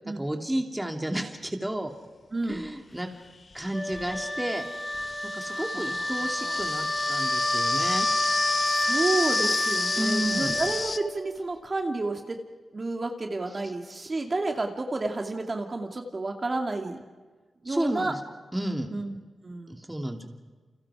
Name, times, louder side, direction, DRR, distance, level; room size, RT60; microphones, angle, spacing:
voice 1, 0.2-1.9 2.5-3.1 3.5-4.6 5.3-8.1 10.0-10.5 17.7-18.2 18.5-18.9 19.7-20.3, right 1 dB, 10° right, 3 dB, 2.8 m, -31 dB
voice 2, 2.3-2.7 5.5-6.7 8.6-12.4 12.7-17.0 17.6-18.1 18.9-19.2 19.4-19.8, right 2 dB, 35° right, 3 dB, 2.6 m, -31 dB
sound 1, 2.5-2.6 3.5-11.0, left 4 dB, 45° left, 1.3 m, -32 dB
Wind instrument woodwind instrument, 3.7-11.3, left 1 dB, 15° left, 3.9 m, -29 dB
30.0 x 29.0 x 5.0 m, 1.4 s
wide cardioid pair, 105°, 0 cm